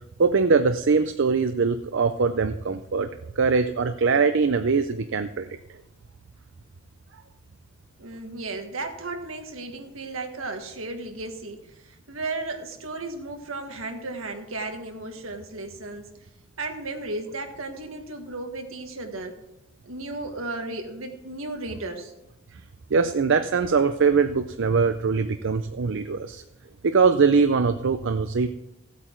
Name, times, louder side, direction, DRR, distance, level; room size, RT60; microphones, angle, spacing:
voice 1, 0.2-3.1 3.4-5.5 22.9-26.4 26.8-28.5, right 5 dB, 65° right, 9 dB, 0.5 m, -22 dB
voice 2, 8.0-16.1 16.6-19.3 19.8-22.1, right 2 dB, 80° right, 5 dB, 1.6 m, -34 dB
16.0 x 8.3 x 4.5 m, 0.90 s
head